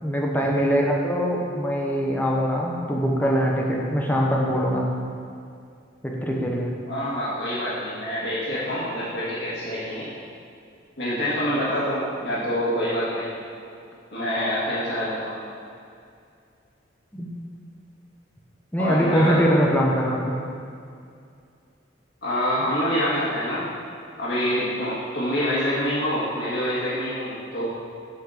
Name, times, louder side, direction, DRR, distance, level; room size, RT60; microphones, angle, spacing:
voice 1, 0.0-4.9 6.0-6.7 17.1-17.3 18.7-20.4, equal, 10° left, -2 dB, 0.9 m, -22 dB
voice 2, 6.9-10.1 11.0-13.3 14.1-15.3 18.8-19.4 22.2-23.6 24.2-27.7, equal, 65° left, -10 dB, 1.8 m, -26 dB
8.2 x 4.3 x 6.5 m, 2.4 s
head